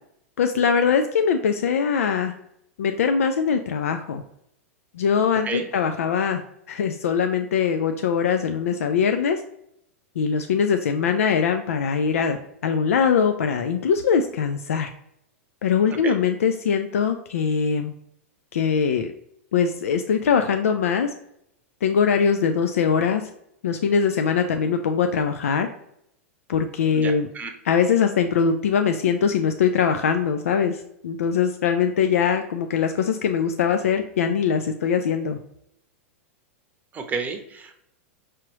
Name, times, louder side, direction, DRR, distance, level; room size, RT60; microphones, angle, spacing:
voice 1, 0.4-2.3 2.8-4.2 4.9-6.4 6.7-9.4 10.2-14.9 15.6-17.9 18.5-19.1 19.5-21.1 21.8-23.2 23.6-25.7 26.5-27.3 27.6-35.4, left 6 dB, 80° left, 6 dB, 0.4 m, -22 dB
voice 2, 26.9-27.5 36.9-37.7, right 5 dB, 20° right, 5 dB, 0.7 m, -31 dB
4.8 x 2.9 x 2.9 m, 0.75 s
hypercardioid pair, 110°, 7 cm